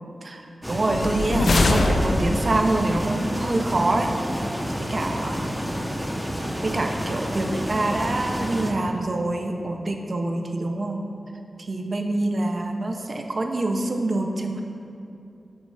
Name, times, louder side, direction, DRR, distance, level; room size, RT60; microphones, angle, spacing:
sound 1, 0.6-8.7, equal, 5° right, 0.6 m, -29 dB
voice 1, 0.7-4.5 4.8-5.4 6.6-11.0 11.7-14.6, right 2 dB, 45° right, 3 dB, 0.5 m, -25 dB
sound 2, 0.8-2.6, left 2 dB, 65° left, 0.4 m, -22 dB
8.0 x 3.2 x 5.4 m, 2.6 s
wide cardioid pair, 115°, 0 cm